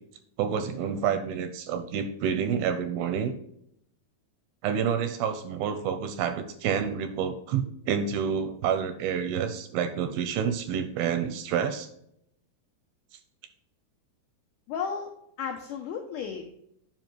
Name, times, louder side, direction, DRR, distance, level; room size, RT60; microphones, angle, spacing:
voice 1, 0.4-3.3 4.6-11.9, right 7 dB, 80° right, 8 dB, 2.3 m, -28 dB
voice 2, 14.7-15.1 15.4-16.5, left 6 dB, 80° left, 2 dB, 1.8 m, -33 dB
9.1 x 5.6 x 3.1 m, 0.74 s
omnidirectional pair, 4.7 m